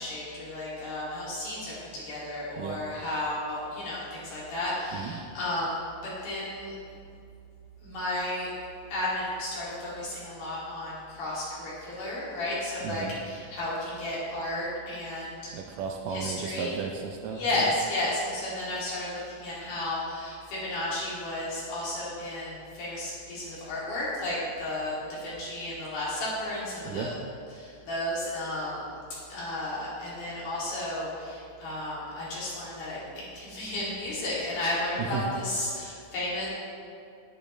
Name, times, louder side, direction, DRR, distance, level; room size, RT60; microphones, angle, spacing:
voice 1, 0.0-6.7 7.8-8.5 8.9-15.4 16.1-16.7 17.3-27.1 27.5-28.9 29.3-33.0 33.3-36.5, left 1 dB, 80° left, -8 dB, 4.5 m, -33 dB
voice 2, 4.9-5.2 12.8-13.2 15.5-17.7 26.8-27.1 35.0-35.3, right 6 dB, 80° right, 2 dB, 2.0 m, -34 dB
10.5 x 10.5 x 3.3 m, 2.4 s
omnidirectional pair, 4.2 m